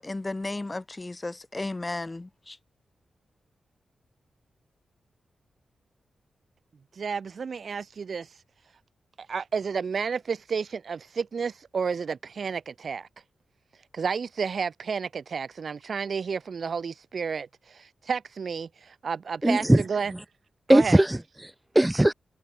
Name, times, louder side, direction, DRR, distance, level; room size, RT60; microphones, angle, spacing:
voice 1, 0.0-2.6, left 2 dB, 25° left, 1.0 m, -34 dB
voice 2, 6.9-8.3 9.2-13.1 13.9-20.1 20.7-21.0, right 5 dB, 60° right, 3.3 m, -31 dB
voice 3, 19.4-19.8 20.7-22.1, right 1 dB, 10° right, 0.4 m, -20 dB
cardioid pair, 65°, 0 cm